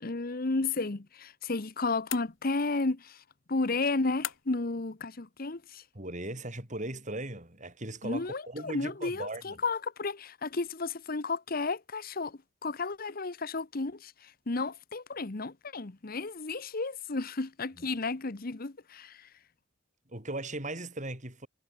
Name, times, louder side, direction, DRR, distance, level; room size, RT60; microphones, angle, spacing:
voice 1, 0.0-3.2 3.5-5.8 8.0-19.3, left 3 dB, 50° left, 1.0 m, -33 dB
sound 1, 2.1-2.8 4.2-4.7, left 11 dB, 85° left, 3.3 m, -40 dB
voice 2, 5.9-9.6 17.8-17.9 20.1-21.5, right 2 dB, 40° right, 7.2 m, -38 dB
head